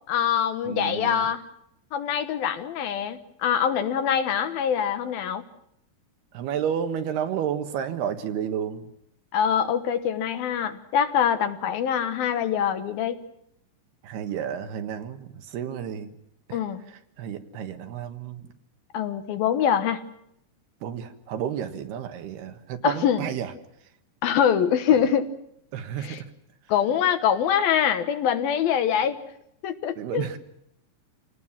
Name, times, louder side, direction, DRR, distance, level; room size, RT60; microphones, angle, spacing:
voice 1, 0.1-1.4 1.9-5.4 9.3-13.2 16.5-16.8 18.9-20.0 22.8-23.3 24.2-25.3 26.0-26.2 26.7-29.2 29.6-30.3, left 8 dB, 70° left, 2.9 m, -24 dB
voice 2, 0.7-1.3 6.3-8.9 14.0-16.1 16.5-16.6 17.2-18.4 20.8-23.5 25.7-26.3 30.0-30.4, right 9 dB, 75° right, 3.6 m, -31 dB
28.0 x 19.0 x 7.4 m
omnidirectional pair, 4.7 m